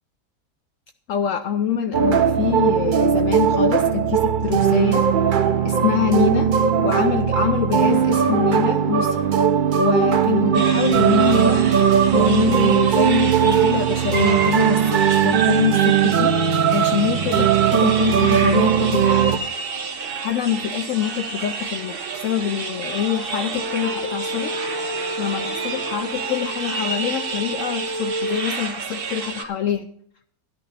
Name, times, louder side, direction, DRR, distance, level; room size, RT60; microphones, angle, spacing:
voice 1, 1.1-6.5 6.8-9.2 9.8-11.8 12.1-16.3 16.7-19.5 20.2-24.5 25.2-29.9, left 9 dB, 65° left, 9 dB, 0.8 m, -25 dB
sound 1, 1.9-19.4, right 8 dB, 60° right, 0.5 m, -18 dB
sound 2, 10.5-29.4, right 5 dB, 40° right, 1.0 m, -30 dB
sound 3, 23.5-28.4, equal, 25° left, 6.2 m, -31 dB
12.5 x 11.5 x 4.1 m, 0.63 s
omnidirectional pair, 1.7 m